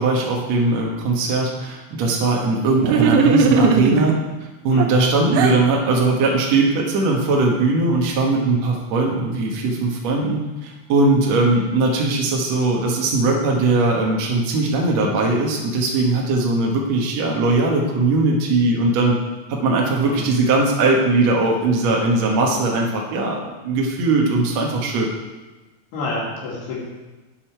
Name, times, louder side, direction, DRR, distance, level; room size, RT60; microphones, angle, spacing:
voice 1, 0.0-4.1 4.6-19.2 19.5-25.1, right 3 dB, 60° right, -1 dB, 2.0 m, -19 dB
sound 1, 2.8-4.2 4.8-5.6, right 5 dB, 90° right, 2.9 m, -18 dB
voice 2, 25.9-26.8, left 2 dB, 85° left, -5 dB, 4.4 m, -28 dB
11.0 x 9.1 x 4.5 m, 1.2 s
omnidirectional pair, 4.5 m